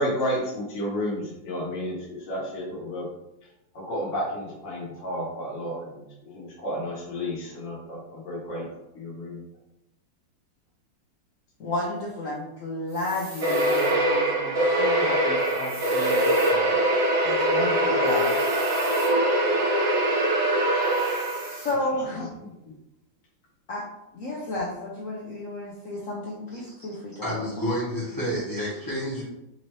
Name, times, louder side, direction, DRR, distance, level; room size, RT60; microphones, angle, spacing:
voice 1, 0.0-3.1 3.7-8.6 8.9-9.4 22.1-22.5, equal, 45° left, -6 dB, 1.5 m, -31 dB
voice 2, 11.6-16.8 17.2-18.4 21.5-22.2 23.7-23.8 24.1-27.6 28.1-28.2, left 2 dB, 85° left, -4 dB, 0.7 m, -32 dB
sound 1, 12.9-13.9 15.4-16.5 18.0-19.1 20.8-21.7, right 1 dB, 40° right, 1.3 m, -43 dB
sound 2, 13.4-21.7, right 1 dB, 70° right, 0.6 m, -23 dB
voice 3, 27.2-29.2, equal, 15° left, -8 dB, 0.8 m, -29 dB
4.3 x 2.6 x 3.1 m, 0.89 s
omnidirectional pair, 2.2 m